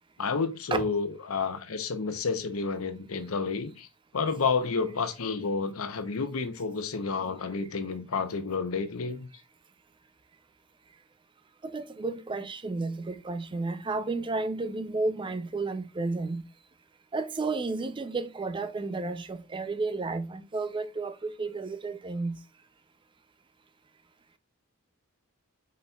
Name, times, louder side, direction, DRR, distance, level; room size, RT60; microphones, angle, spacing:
voice 1, 0.2-3.9 4.1-9.3, left 4 dB, 90° left, 0.7 m, -30 dB
voice 2, 11.6-16.5 17.1-22.4, right 3 dB, 25° right, 0.4 m, -32 dB
5.2 x 4.2 x 2.3 m
head